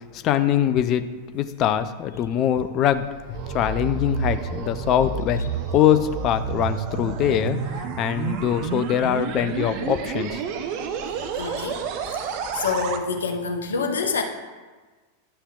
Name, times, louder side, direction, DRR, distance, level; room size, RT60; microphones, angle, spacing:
voice 1, 0.1-1.1 1.3-3.1 3.5-5.4 5.7-10.4, left 10 dB, 35° left, 10 dB, 0.4 m, -23 dB
sound 1, 2.9-13.0, right 6 dB, 45° right, 0.6 m, -30 dB
voice 2, 11.4-11.8 12.1-12.3 12.6-14.2, left 4 dB, 70° left, 4 dB, 0.8 m, -26 dB
11.5 x 5.6 x 2.4 m, 1.3 s
figure-of-eight pair, 90°, 0 cm